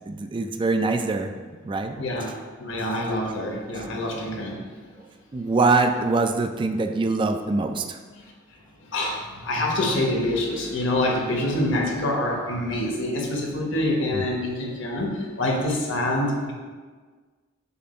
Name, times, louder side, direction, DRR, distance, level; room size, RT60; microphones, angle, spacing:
voice 1, 0.1-1.3 1.6-2.0 3.7-3.9 5.3-8.0 14.1-14.3, right 3 dB, 25° right, 6 dB, 0.3 m, -23 dB
voice 2, 2.0-4.7 8.8-16.5, left 1 dB, 65° left, -1 dB, 1.1 m, -26 dB
6.9 x 2.5 x 5.4 m, 1.5 s
head